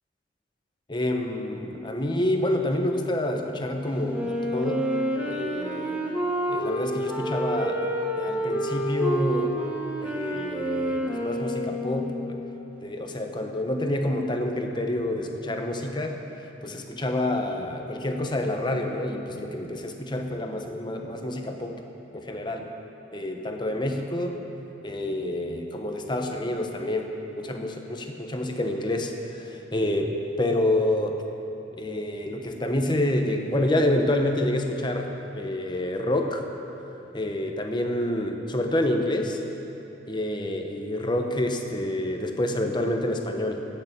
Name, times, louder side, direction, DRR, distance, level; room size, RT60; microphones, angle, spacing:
voice 1, 0.9-4.9 5.2-6.0 6.5-7.8 8.2-9.6 10.0-12.4 12.8-16.2 16.6-21.8 22.1-22.7 23.1-24.4 24.8-27.1 27.4-30.1 30.4-31.2 31.8-36.4 37.1-39.4 40.1-43.6, left 1 dB, 25° left, 3 dB, 1.0 m, -28 dB
Wind instrument woodwind instrument, 4.1-12.6, equal, 5° right, 1.2 m, -29 dB
16.0 x 6.8 x 7.3 m, 3.0 s
head